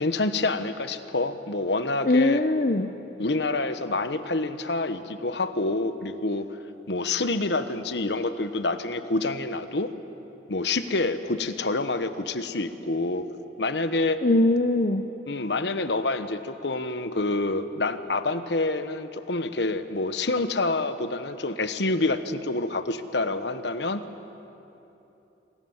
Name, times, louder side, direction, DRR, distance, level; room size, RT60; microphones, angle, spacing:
voice 1, 0.0-2.4 3.2-6.5 6.9-9.9 10.5-13.3 13.6-14.2 15.3-24.0, left 2 dB, 80° left, 10 dB, 1.2 m, -27 dB
voice 2, 2.0-2.9 14.2-15.1, left 2 dB, 45° left, 8 dB, 0.7 m, -21 dB
27.0 x 25.0 x 7.3 m, 3.0 s
head